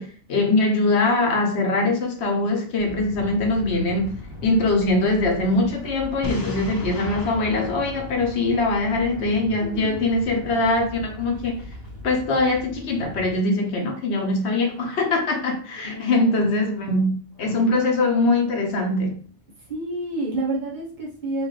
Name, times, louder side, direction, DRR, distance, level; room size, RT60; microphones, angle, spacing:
voice 1, 0.0-4.1 4.4-11.6 12.0-19.2, left 2 dB, 70° left, 1.1 m, -22 dB
sound 1, 2.7-13.3, left 1 dB, 25° right, 1.2 m, -39 dB
Boom, 6.2-9.1, equal, 25° left, 0.5 m, -35 dB
voice 2, 9.6-10.4 15.8-16.6 17.4-17.8 19.7-21.5, right 1 dB, 45° right, 1.1 m, -30 dB
4.3 x 2.6 x 3.2 m
omnidirectional pair, 1.2 m